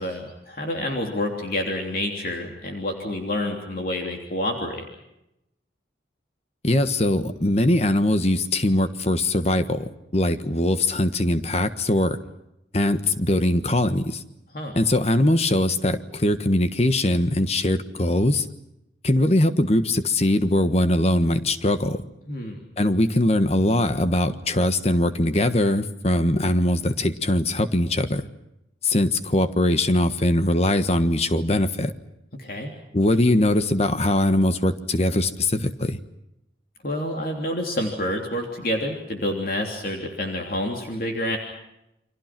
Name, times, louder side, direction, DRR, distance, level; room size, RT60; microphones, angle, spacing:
voice 1, 0.0-4.8 14.5-14.8 22.3-22.6 32.3-32.7 36.8-41.4, left 1 dB, 50° left, 2 dB, 3.2 m, -28 dB
voice 2, 6.6-9.8 10.1-12.2 12.7-14.2 14.7-18.4 19.0-22.0 22.8-28.2 28.8-31.9 32.9-36.0, left 1 dB, 35° left, 10 dB, 1.4 m, -21 dB
29.5 x 24.5 x 6.1 m, 0.86 s
head